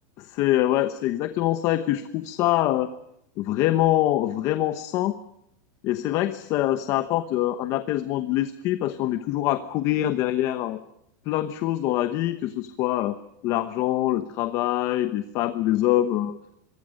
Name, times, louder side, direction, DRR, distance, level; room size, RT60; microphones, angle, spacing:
voice 1, 0.2-2.9 3.4-5.2 5.8-10.8 11.3-16.4, left 14 dB, 30° left, 11 dB, 1.0 m, -24 dB
27.0 x 23.5 x 6.5 m, 0.77 s
supercardioid pair, 170°, 10 cm